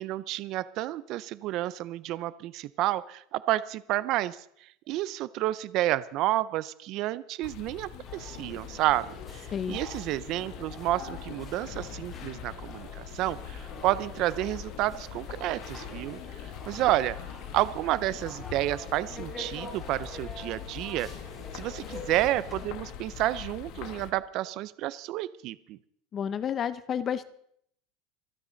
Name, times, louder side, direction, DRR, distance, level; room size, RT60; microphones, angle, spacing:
voice 1, 0.0-17.2 17.5-21.1 21.5-25.8, right 15 dB, 50° right, 17 dB, 0.5 m, -30 dB
sound 1, 7.4-24.1, left 9 dB, 55° left, 1.5 m, -43 dB
sound 2, 8.1-22.6, left 3 dB, 15° left, 7.0 m, -45 dB
voice 2, 26.1-27.2, left 8 dB, 30° left, 14 dB, 0.6 m, -30 dB
26.0 x 9.6 x 3.9 m, 0.68 s
supercardioid pair, 145°, 0 cm